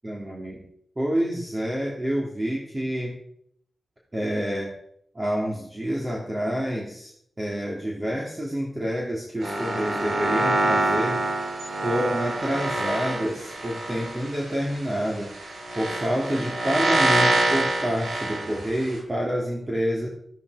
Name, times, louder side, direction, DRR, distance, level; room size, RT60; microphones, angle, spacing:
voice 1, 0.0-0.6 1.0-3.2 4.1-4.7 5.1-7.1 7.4-11.2 11.8-15.3 15.7-20.1, equal, 20° right, -2 dB, 2.7 m, -28 dB
sound 1, 9.4-19.0, right 2 dB, 85° right, 5.9 m, -26 dB
13.5 x 13.5 x 4.9 m, 0.68 s
wide cardioid pair, 140°, 0 cm